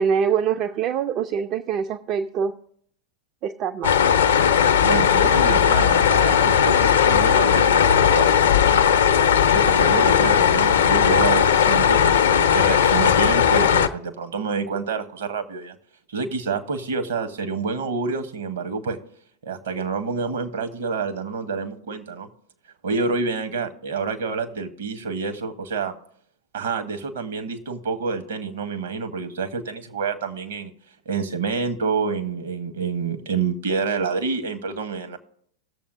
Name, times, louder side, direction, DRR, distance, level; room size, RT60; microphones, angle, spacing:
voice 1, 0.0-2.6 3.4-4.0, right 7 dB, 35° right, 9 dB, 0.4 m, -24 dB
sound 1, 3.8-13.9, left 8 dB, 65° left, 0.5 m, -17 dB
voice 2, 4.8-9.0 9.5-15.8 16.1-19.0 19.4-22.3 22.8-25.9 26.5-30.7 31.1-35.2, right 4 dB, 60° right, 7 dB, 1.1 m, -28 dB
18.5 x 7.0 x 2.6 m, 0.67 s
figure-of-eight pair, 90°, 0 cm